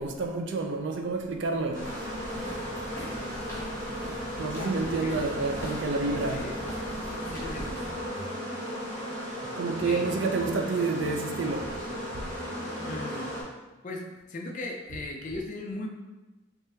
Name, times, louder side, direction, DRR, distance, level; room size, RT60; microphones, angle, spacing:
voice 1, 0.0-1.9 4.4-6.5 9.6-11.7, right 3 dB, 65° right, 0.4 m, -29 dB
sound 1, 1.5-8.1, equal, 15° left, 1.0 m, -41 dB
sound 2, 1.7-13.4, equal, 45° right, 1.2 m, -36 dB
voice 2, 4.5-5.2 6.3-6.6 7.3-7.8 9.8-10.1 12.8-13.3 13.8-15.9, left 2 dB, 40° left, 0.4 m, -38 dB
sound 3, 4.5-8.7 9.4-13.6, right 1 dB, 20° right, 0.8 m, -48 dB
3.5 x 3.4 x 2.8 m
head